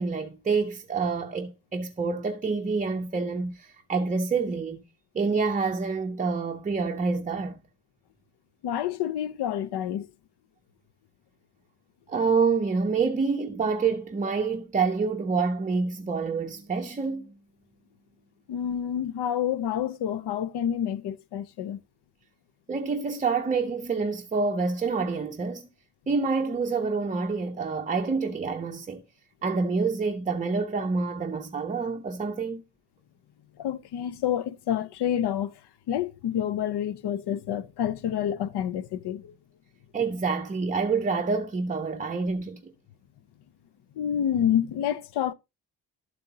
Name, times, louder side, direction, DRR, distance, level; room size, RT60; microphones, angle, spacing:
voice 1, 0.0-4.8 5.1-7.6 12.1-17.4 22.7-25.7 26.1-29.0 29.4-32.6 39.9-42.7, right 4 dB, 20° right, 0.5 m, -27 dB
voice 2, 8.6-10.1 18.5-21.8 33.6-35.5 35.9-39.3 44.0-45.3, left 10 dB, 85° left, 0.7 m, -28 dB
12.0 x 7.7 x 2.7 m
wide cardioid pair, 170°, 39 cm